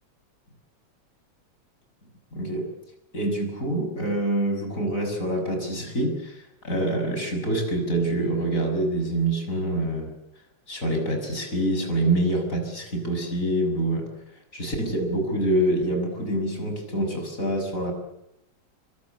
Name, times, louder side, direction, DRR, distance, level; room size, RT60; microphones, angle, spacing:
voice 1, 2.3-2.7 3.1-10.1 10.7-14.1 14.5-17.9, right 1 dB, 40° left, 5 dB, 6.8 m, -26 dB
26.5 x 24.5 x 7.0 m, 0.83 s
omnidirectional pair, 2.2 m